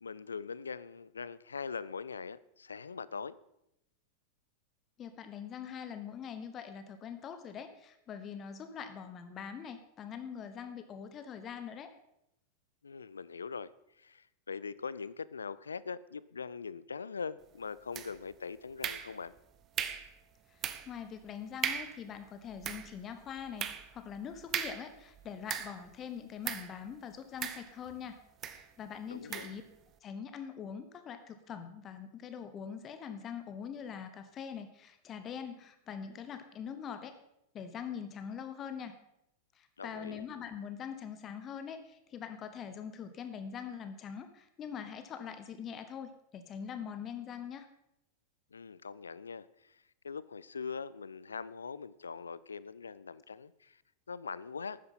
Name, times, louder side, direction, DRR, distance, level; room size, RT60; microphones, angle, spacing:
voice 1, 0.0-3.4 12.8-13.7 14.0-19.3 29.1-29.5 39.8-40.2 48.5-53.8 54.1-54.8, left 5 dB, 75° left, 0.4 m, -42 dB
voice 2, 5.0-11.9 20.5-28.2 28.5-29.6 30.0-37.1 37.5-38.9 39.6-47.7, left 7 dB, 30° left, 1.0 m, -43 dB
sound 1, 17.9-18.4 18.8-19.4 19.8-20.1 20.6-21.0 21.3-21.4 21.6-22.0 22.5-25.9 26.4-26.8 27.4-28.0 28.4-28.7 29.3-29.6, right 9 dB, 30° right, 0.9 m, -38 dB
12.5 x 9.6 x 5.7 m
figure-of-eight pair, 90°, 0 cm